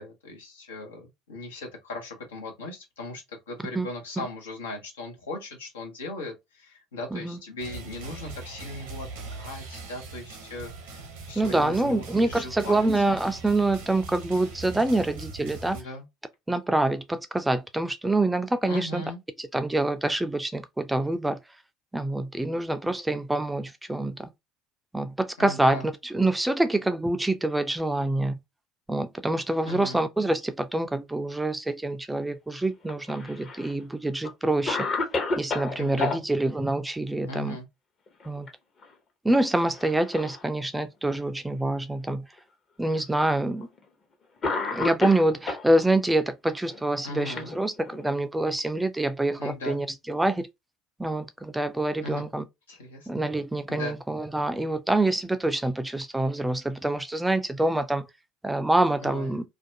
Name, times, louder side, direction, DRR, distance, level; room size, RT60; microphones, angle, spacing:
voice 1, 0.0-13.1 15.7-16.1 18.6-19.2 25.4-25.9 29.6-30.0 35.8-36.2 37.2-37.7 47.0-47.5 49.4-49.8 52.0-52.3 52.7-53.3 53.7-54.0 59.0-59.4, left 2 dB, 80° left, 0.8 m, -38 dB
sound 1, 7.6-15.8, right 3 dB, 70° right, 0.7 m, -41 dB
voice 2, 11.4-15.8 16.5-19.0 19.5-21.4 21.9-24.3 24.9-28.4 28.9-34.9 35.4-37.6 38.3-38.5 39.2-42.3 42.8-43.7 44.7-50.5 51.0-52.4 53.1-58.1 58.4-59.4, right 2 dB, 10° right, 0.4 m, -26 dB
Cough, 32.8-33.7 34.2-34.3 34.7-36.2 38.1-38.5 38.8-38.9 39.7-40.4 41.2-41.3 42.4-42.5 43.6-43.8 44.4-45.7 46.6-48.1, left 3 dB, 40° left, 0.9 m, -31 dB
2.5 x 2.2 x 2.5 m
figure-of-eight pair, 60°, 0 cm